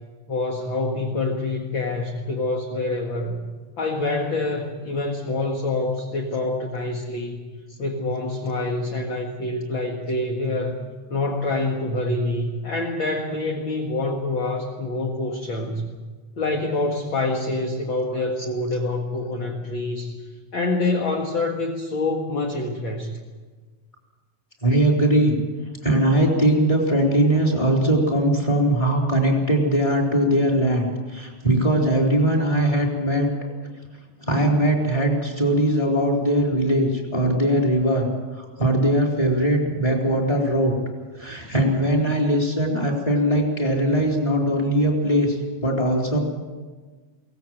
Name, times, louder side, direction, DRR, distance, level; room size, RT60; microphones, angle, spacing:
voice 1, 0.3-3.4 3.8-7.4 7.8-10.8 11.1-15.9 16.4-20.2 20.5-23.2, left 2 dB, 45° left, 2 dB, 2.0 m, -26 dB
voice 2, 24.6-25.4 25.8-33.3 34.3-40.7 41.2-46.2, right 1 dB, 10° left, -1 dB, 3.9 m, -20 dB
23.0 x 18.5 x 7.8 m, 1.4 s
omnidirectional pair, 4.0 m